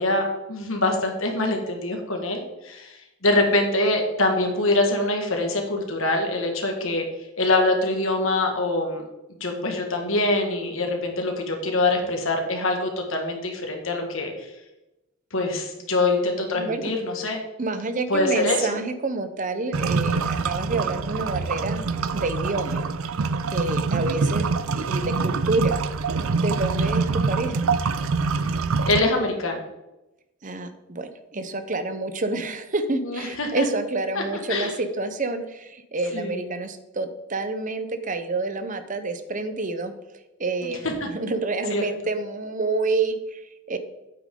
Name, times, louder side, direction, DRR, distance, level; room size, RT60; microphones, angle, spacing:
voice 1, 0.0-3.0 3.2-7.0 7.4-9.0 9.4-14.5 15.3-17.4 18.1-18.7 28.9-29.6 33.1-33.7 34.2-34.3 34.5-34.7 36.1-36.5 40.6-40.7 41.7-41.8, left 2 dB, 65° left, 2 dB, 1.9 m, -24 dB
voice 2, 16.5-16.9 17.6-21.9 22.1-22.8 23.5-25.8 26.1-27.6 30.4-39.9 40.4-43.8, right 3 dB, 35° right, 9 dB, 0.8 m, -28 dB
sound 1, 19.7-29.0, right 4 dB, 70° right, 0.5 m, -25 dB
8.8 x 8.5 x 3.8 m, 0.96 s
head